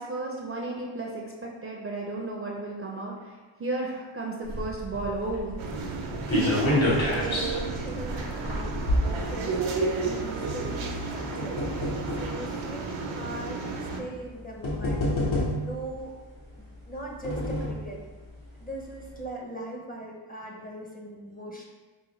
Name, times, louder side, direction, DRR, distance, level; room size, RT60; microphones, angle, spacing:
voice 1, 0.0-3.3 3.6-5.8, right 2 dB, 30° right, -2 dB, 0.5 m, -34 dB
sound 1, 4.4-9.9 10.8-12.3 13.1-13.2 14.2-14.3 14.6-15.8 16.8-17.9 18.3-18.4 18.7-18.8, left 1 dB, 70° left, 1.2 m, -28 dB
sound 2, 5.6-14.0, right 4 dB, 75° right, 0.7 m, -32 dB
voice 2, 6.1-16.1 16.9-18.0 18.6-21.7, right 1 dB, 20° left, -1 dB, 0.6 m, -40 dB
4.7 x 2.2 x 3.0 m, 1.3 s
cardioid pair, 80°, 49 cm